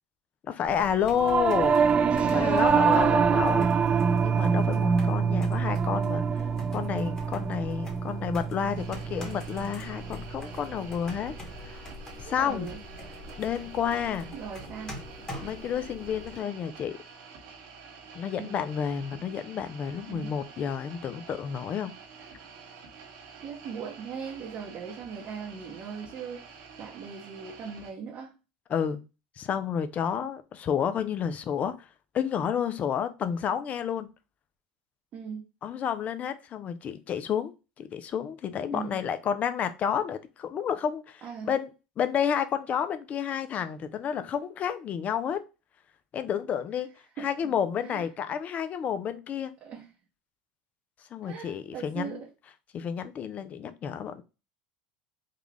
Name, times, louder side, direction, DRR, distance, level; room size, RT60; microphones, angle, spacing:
voice 1, 0.4-1.8 2.2-3.7 4.2-6.3 6.7-11.4 11.6-11.8 12.2-12.7 13.4-14.3 15.4-17.0 18.1-21.9 28.7-29.0 29.4-31.9 32.1-34.1 35.6-41.7 42.0-45.4 46.1-46.9 47.2-49.5 51.1-52.2 52.7-54.2, left 8 dB, 35° left, 0.5 m, -30 dB
sound 1, 0.6-16.4, left 1 dB, 15° left, 1.3 m, -44 dB
Singing / Musical instrument, 1.1-10.7, right 6 dB, 30° right, 0.3 m, -25 dB
sound 2, 8.8-27.9, right 5 dB, 75° right, 1.6 m, -48 dB
voice 2, 12.2-13.2 14.3-15.0 18.4-18.6 20.1-20.4 23.4-28.3 35.1-35.4 38.7-39.0 41.2-41.5 47.2-47.5 47.8-48.1 49.6-49.9 51.2-52.3, right 6 dB, 45° right, 0.8 m, -39 dB
3.7 x 2.4 x 3.3 m
supercardioid pair, 105°, 4 cm